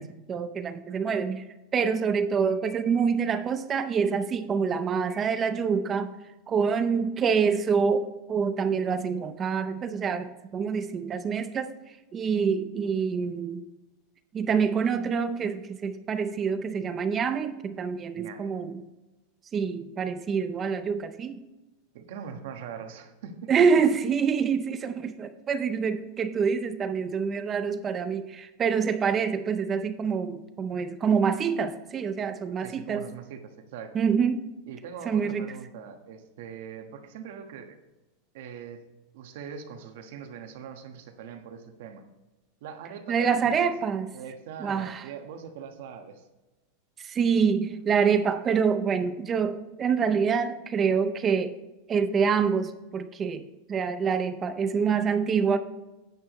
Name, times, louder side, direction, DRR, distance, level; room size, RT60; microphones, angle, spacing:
voice 1, 0.3-1.4 1.7-6.1 6.5-11.7 12.1-13.6 14.3-18.8 19.5-21.4 23.5-33.1 33.9-34.5 35.1-35.5 43.1-44.1 44.6-45.0 47.0-51.5 51.9-55.6, right 6 dB, 20° right, 10 dB, 0.5 m, -26 dB
voice 2, 18.2-18.6 21.9-23.7 32.6-33.9 34.7-37.8 38.3-38.8 39.1-42.0 42.6-43.7 44.1-46.3, right 7 dB, 60° right, 6 dB, 1.3 m, -41 dB
10.5 x 8.7 x 3.1 m, 1.1 s
supercardioid pair, 170°, 0 cm